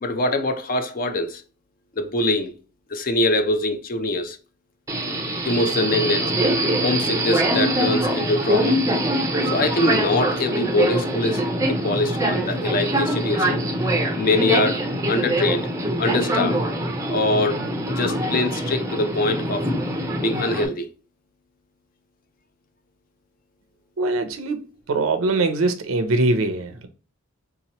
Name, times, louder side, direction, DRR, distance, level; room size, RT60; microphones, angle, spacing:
voice 1, 0.0-1.4 2.0-2.5 2.9-4.4 5.5-6.3 6.8-8.8 9.4-11.4 11.7-13.6 14.2-14.8 15.1-15.7 16.0-16.6 17.1-17.6 17.9-19.7 20.2-20.9, left 2 dB, 40° left, 0.5 m, -23 dB
Subway metro underground, 4.9-20.7, right 1 dB, 15° right, 0.5 m, -23 dB
voice 2, 24.0-26.9, right 2 dB, 70° right, 0.5 m, -22 dB
3.7 x 2.9 x 2.9 m
head